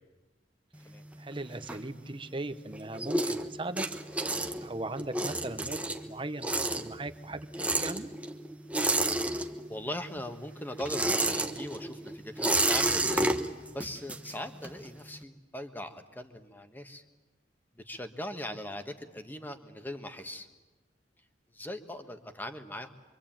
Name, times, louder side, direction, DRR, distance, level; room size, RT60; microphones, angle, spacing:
sound 1, 0.7-2.4 2.7-9.9 10.2-14.9, right 2 dB, 10° right, 1.1 m, -31 dB
voice 1, 1.2-3.8 4.6-8.1, right 2 dB, 30° right, 10 dB, 1.0 m, -38 dB
voice 2, 9.7-13.3 13.7-17.0 17.8-20.5 21.5-22.9, left 1 dB, 10° left, 7 dB, 1.5 m, -40 dB
25.5 x 25.0 x 8.9 m, 1.2 s
head